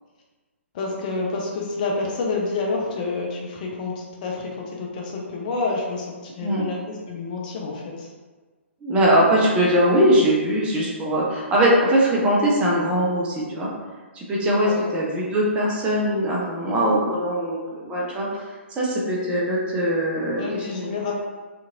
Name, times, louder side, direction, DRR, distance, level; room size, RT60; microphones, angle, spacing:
voice 1, 0.7-8.1 14.6-14.8 20.4-21.1, left 3 dB, 40° left, -1 dB, 0.5 m, -28 dB
voice 2, 8.8-13.7 14.1-17.6 17.8-18.4 18.7-20.9, equal, 15° right, -4 dB, 0.5 m, -21 dB
2.7 x 2.5 x 2.5 m, 1.3 s
figure-of-eight pair, 125°, 7 cm